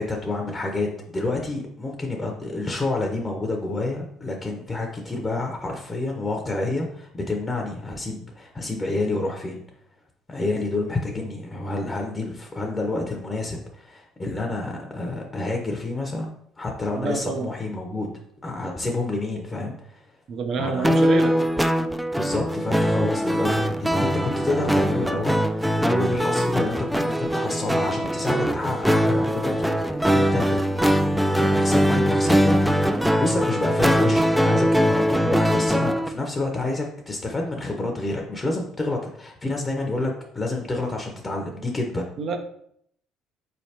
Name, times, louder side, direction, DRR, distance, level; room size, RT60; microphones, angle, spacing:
voice 1, 0.0-9.6 10.3-18.1 18.4-20.1 20.6-21.0 22.2-29.7 30.1-30.6 31.3-32.6 32.9-42.0, left 2 dB, 25° left, 2 dB, 0.7 m, -28 dB
voice 2, 17.0-17.5 20.3-21.4 42.2-42.4, right 4 dB, 55° right, 6 dB, 0.6 m, -27 dB
sound 1, 20.8-36.1, equal, 5° right, 0.3 m, -21 dB
4.1 x 3.3 x 2.8 m, 0.68 s
supercardioid pair, 70°, 0 cm